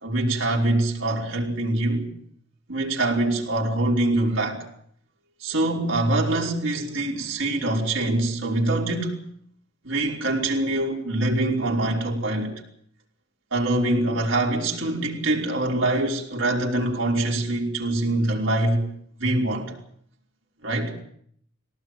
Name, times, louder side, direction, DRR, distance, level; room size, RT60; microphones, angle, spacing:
voice 1, 0.0-2.0 2.7-4.6 5.4-9.2 9.8-12.6 13.5-18.8 19.2-19.7 20.6-20.9, right 2 dB, 75° right, 5.3 m, -24 dB
21.0 x 18.0 x 9.0 m
head